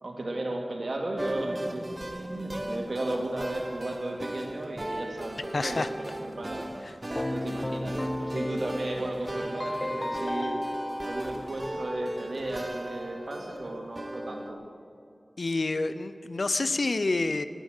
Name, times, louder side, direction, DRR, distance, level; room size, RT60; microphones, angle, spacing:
voice 1, 0.0-6.6 7.0-10.6 11.0-14.6, right 1 dB, 70° right, 0 dB, 2.5 m, -34 dB
sound 1, 1.2-14.5, right 1 dB, 30° right, 0.9 m, -37 dB
voice 2, 5.5-5.9 6.9-7.3 15.4-17.4, left 3 dB, 75° left, 12 dB, 0.6 m, -28 dB
Keyboard (musical), 7.2-12.1, left 1 dB, 25° left, 0.4 m, -34 dB
21.0 x 9.0 x 6.5 m, 2.4 s
wide cardioid pair, 70°, 0 cm